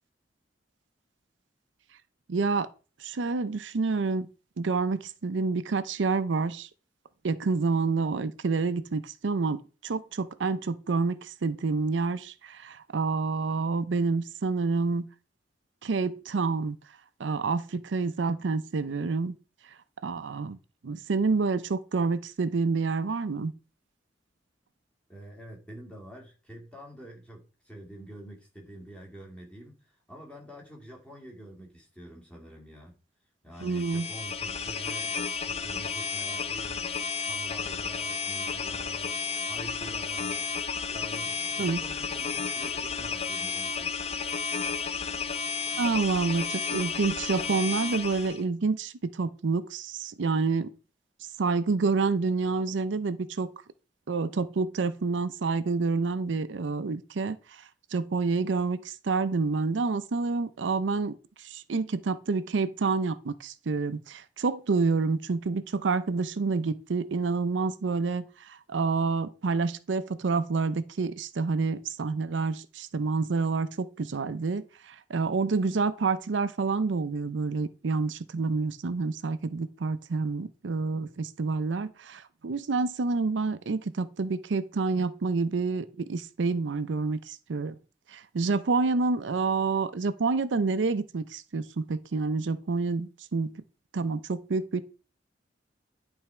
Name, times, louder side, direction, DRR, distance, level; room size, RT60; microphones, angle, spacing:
voice 1, 2.3-2.7 3.0-4.3 4.6-6.7 7.2-15.1 15.8-16.8 17.2-19.4 20.0-20.6 20.8-23.5 33.6-34.1 41.6-41.8 45.8-50.7 51.4-53.5 54.1-57.4 57.9-87.8 88.1-93.5 93.9-94.8, right 4 dB, 85° right, 0.5 m, -28 dB
voice 2, 25.1-32.9 33.4-35.2 35.4-39.2 39.4-44.0, right 1 dB, 5° left, 2.0 m, -46 dB
sound 1, 33.6-48.4, left 5 dB, 35° left, 0.6 m, -32 dB
10.5 x 3.5 x 4.4 m
head